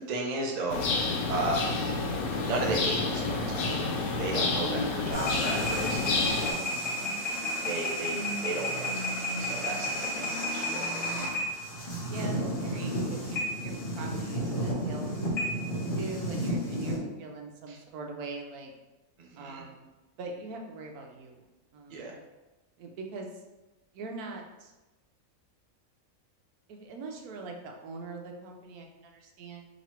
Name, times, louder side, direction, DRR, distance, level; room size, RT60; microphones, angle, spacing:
voice 1, 0.1-0.8 1.3-1.6 2.3-6.7 7.6-8.1 8.4-11.2 17.7-17.8 19.2-19.6 21.9-22.1, right 2 dB, 45° right, 0 dB, 0.5 m, -35 dB
sound 1, 0.7-6.5, left 3 dB, 75° left, 1.1 m, -29 dB
voice 2, 4.6-5.3 6.6-7.2 12.1-15.3 15.9-18.7 19.4-19.9 20.2-21.4 21.7-22.2 22.8-23.3 23.9-24.7 26.7-29.7, right 3 dB, 85° right, 2 dB, 1.1 m, -42 dB
sound 2, 5.1-17.0, equal, 45° left, 1.1 m, -32 dB
3.0 x 2.9 x 4.3 m, 1.1 s
omnidirectional pair, 1.6 m